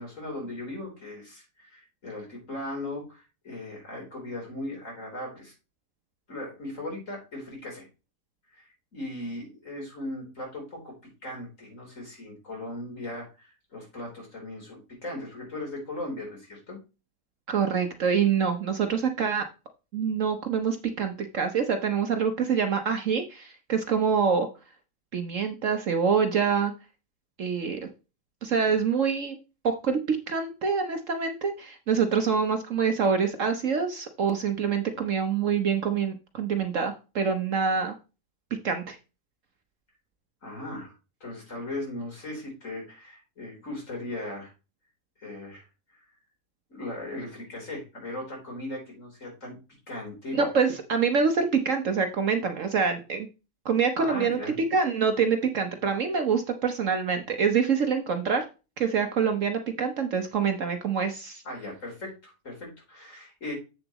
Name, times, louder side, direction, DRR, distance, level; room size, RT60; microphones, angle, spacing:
voice 1, 0.0-5.5 6.3-7.9 8.5-10.9 11.2-16.8 40.4-40.9 41.2-44.5 45.2-46.1 46.7-49.6 49.9-50.4 54.0-54.6 61.4-63.5, left 1 dB, 50° left, 0 dB, 4.4 m, -38 dB
voice 2, 17.5-19.4 19.9-24.5 25.1-26.7 27.4-27.8 28.4-29.4 29.6-37.9 38.6-39.0 50.3-53.3 53.6-58.5 58.8-61.4, right 6 dB, 55° right, 6 dB, 1.1 m, -26 dB
8.0 x 7.2 x 3.0 m, 0.30 s
omnidirectional pair, 1.8 m